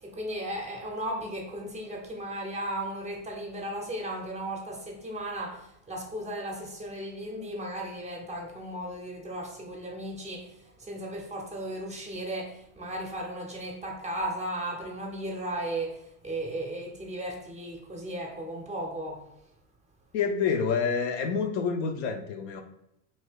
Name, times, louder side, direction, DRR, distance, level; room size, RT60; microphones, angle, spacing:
voice 1, 0.0-19.3, right 1 dB, 15° right, 0.6 m, -36 dB
voice 2, 20.1-22.6, left 6 dB, 55° left, 0.5 m, -28 dB
2.7 x 2.7 x 3.5 m
figure-of-eight pair, 75°, 44 cm